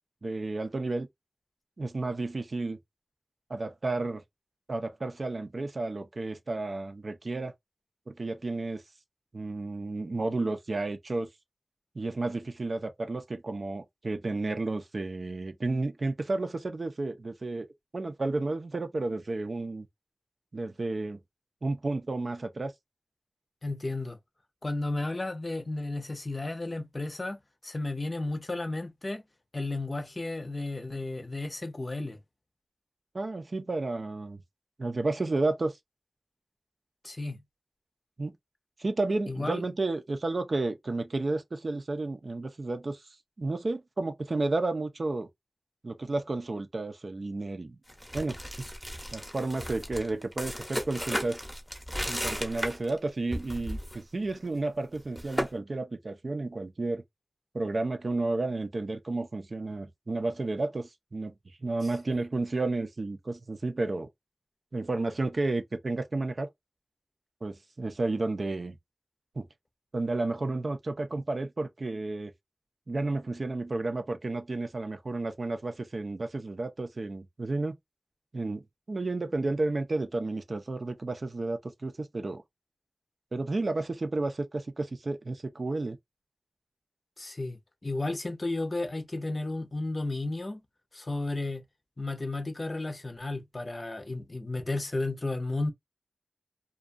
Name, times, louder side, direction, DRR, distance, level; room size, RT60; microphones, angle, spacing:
voice 1, 0.2-1.1 1.8-2.8 3.5-4.2 4.7-7.5 8.1-8.8 9.3-11.3 11.9-17.7 17.9-19.9 20.5-21.2 21.6-22.7 33.1-34.4 34.8-35.8 38.2-38.3 38.8-43.0 43.4-45.3 45.8-47.8 48.1-48.4 49.1-51.4 52.1-57.0 57.5-61.3 61.6-64.1 64.7-66.5 67.4-68.8 69.4-69.5 69.9-72.3 72.9-77.7 78.3-82.4 83.3-86.0, right 2 dB, 65° right, 0.4 m, -32 dB
voice 2, 23.6-24.2 24.6-27.4 27.6-29.2 29.5-32.2 37.0-37.4 39.3-39.6 87.2-90.6 90.9-91.6 92.0-95.7, left 2 dB, 45° left, 0.5 m, -33 dB
sound 1, 47.9-53.0 53.3-54.0 54.2-54.5 54.9-55.5, equal, ahead, 0.7 m, -35 dB
2.4 x 2.2 x 2.5 m
wide cardioid pair, 65°, 0 cm